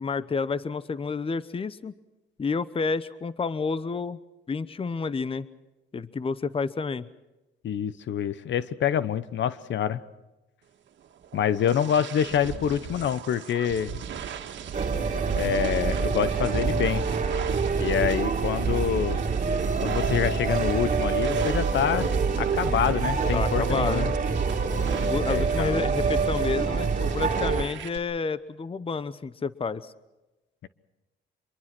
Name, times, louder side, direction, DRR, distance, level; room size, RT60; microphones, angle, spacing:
voice 1, 0.0-1.9 2.4-4.2 4.5-5.5 5.9-7.1 23.3-24.1 24.9-29.9, left 4 dB, 30° left, 16 dB, 0.8 m, -30 dB
voice 2, 7.6-10.0 11.3-14.0 15.3-17.0 17.8-19.3 19.8-22.1 22.4-24.1 25.2-25.9 30.6-30.7, left 9 dB, 65° left, 15 dB, 1.1 m, -26 dB
sound 1, 11.0-28.0, right 7 dB, 65° right, 2.0 m, -36 dB
sound 2, 14.7-27.6, right 5 dB, 40° right, 2.7 m, -26 dB
25.0 x 22.5 x 6.1 m, 1.0 s
cardioid pair, 90°, 20 cm